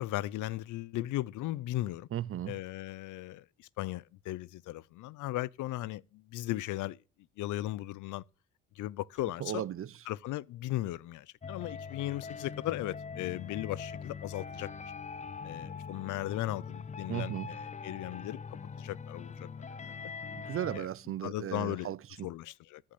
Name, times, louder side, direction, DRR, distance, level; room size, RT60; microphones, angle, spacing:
voice 1, 0.0-2.1 2.5-7.0 7.4-8.2 8.8-9.7 10.1-14.7 15.4-20.1 20.7-20.9 21.2-21.9 22.2-22.8, left 16 dB, 80° left, 0.5 m, -37 dB
voice 2, 2.1-2.5 9.4-9.9 17.1-17.5 20.3-22.3, right 11 dB, 45° right, 0.5 m, -36 dB
sound 1, 11.4-20.8, left 5 dB, 25° left, 0.5 m, -42 dB
13.5 x 5.3 x 8.4 m
cardioid pair, 90°, 30 cm